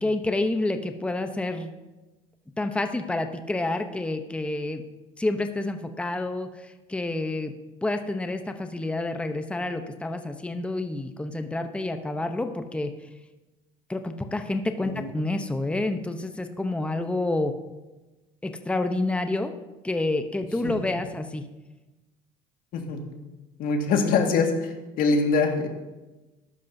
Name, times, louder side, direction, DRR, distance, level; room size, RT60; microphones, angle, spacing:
voice 1, 0.0-1.7 2.6-4.8 5.2-7.5 7.8-12.9 13.9-17.6 18.4-19.5 19.8-21.4, left 2 dB, 5° left, 7 dB, 0.8 m, -28 dB
voice 2, 22.7-23.1 23.6-25.7, left 4 dB, 65° left, 3 dB, 1.9 m, -24 dB
14.0 x 11.5 x 2.7 m, 1.1 s
supercardioid pair, 100°, 16 cm